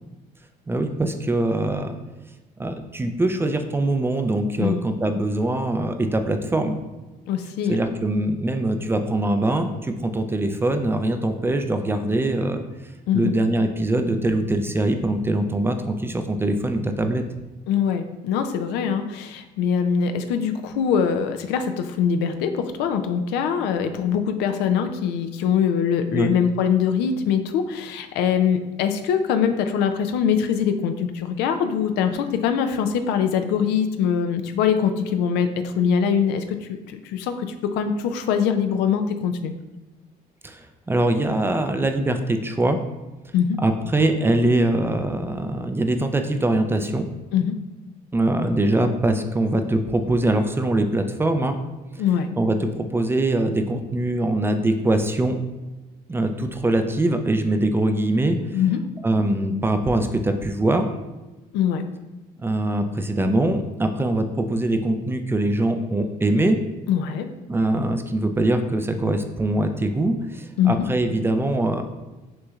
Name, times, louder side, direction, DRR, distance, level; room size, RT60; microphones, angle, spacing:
voice 1, 0.7-2.0 2.6-6.8 7.7-12.6 13.1-17.2 26.1-26.3 40.4-42.8 43.6-47.1 48.1-51.6 52.4-55.4 56.1-58.4 59.0-60.9 62.4-66.6 67.5-71.8, right 1 dB, 15° right, 7 dB, 0.3 m, -22 dB
voice 2, 7.3-7.8 13.1-13.3 17.7-36.6 36.9-39.5 43.3-43.6 47.3-47.5 52.0-52.3 58.5-58.8 61.5-61.9 66.9-67.3 70.6-70.8, left 7 dB, 90° left, 8 dB, 0.4 m, -23 dB
6.2 x 3.0 x 2.4 m, 1.1 s
cardioid pair, 110°, 17 cm